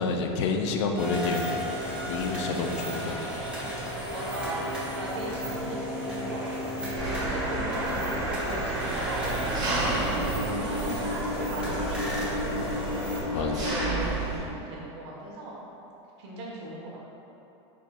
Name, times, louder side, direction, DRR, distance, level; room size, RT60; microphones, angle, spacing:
voice 1, 0.0-1.6 2.0-3.2 13.3-13.6, left 4 dB, 75° left, 3 dB, 0.5 m, -29 dB
sound 1, 1.0-13.2, equal, 5° right, 1.0 m, -33 dB
voice 2, 4.1-12.8 13.2-15.6 16.2-17.0, right 1 dB, 70° right, -4 dB, 1.2 m, -38 dB
Engine, 7.0-14.4, right 1 dB, 25° right, 1.2 m, -30 dB
4.6 x 4.2 x 2.4 m, 2.9 s
supercardioid pair, 140°, 15 cm